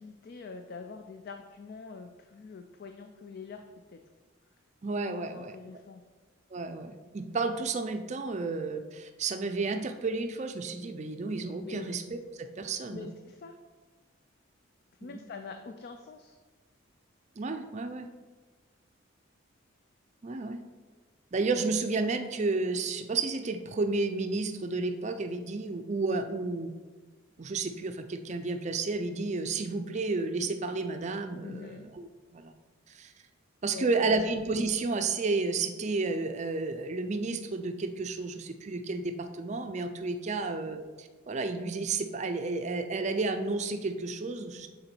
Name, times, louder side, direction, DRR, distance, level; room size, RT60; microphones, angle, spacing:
voice 1, 0.0-4.0 5.2-6.0 11.6-11.9 12.9-13.6 15.0-16.4 31.4-31.9 33.7-34.2, left 4 dB, 50° left, 6 dB, 0.3 m, -44 dB
voice 2, 4.8-5.8 6.5-13.1 15.0-15.2 17.4-18.1 20.2-20.6 21.3-26.7 27.4-32.5 32.9-33.1 33.6-44.7, right 3 dB, 35° right, 7 dB, 0.4 m, -32 dB
6.8 x 3.9 x 4.4 m, 1.3 s
head